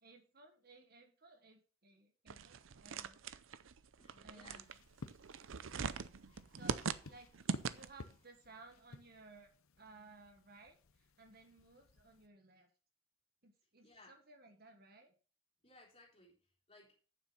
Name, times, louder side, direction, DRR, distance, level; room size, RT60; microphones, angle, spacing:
voice 1, 0.0-3.2 4.2-4.7 6.5-9.5 9.8-12.7 13.4-15.1, right 3 dB, 45° right, 4 dB, 1.4 m, -60 dB
sound 1, 2.3-8.1, right 5 dB, 65° right, 0.6 m, -42 dB
voice 2, 4.0-4.7 13.8-14.2 15.6-17.0, left 2 dB, 25° left, -2 dB, 3.6 m, -62 dB
sound 2, 4.6-12.3, left 3 dB, 75° left, 0.8 m, -56 dB
8.9 x 7.4 x 5.5 m, 0.37 s
head